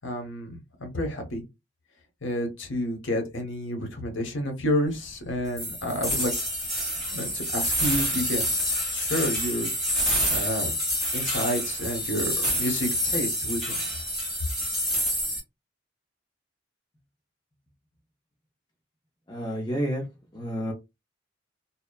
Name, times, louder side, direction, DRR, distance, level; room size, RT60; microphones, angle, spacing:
voice 1, 0.0-1.4 2.2-6.3 7.1-9.7 10.3-10.7 11.1-13.8, equal, 75° left, 0.9 m, -30 dB
sound 1, 5.6-15.4, equal, ahead, 1.5 m, -27 dB
voice 2, 19.3-20.1 20.3-20.7, equal, 20° left, 0.5 m, -29 dB
2.7 x 2.1 x 2.2 m
head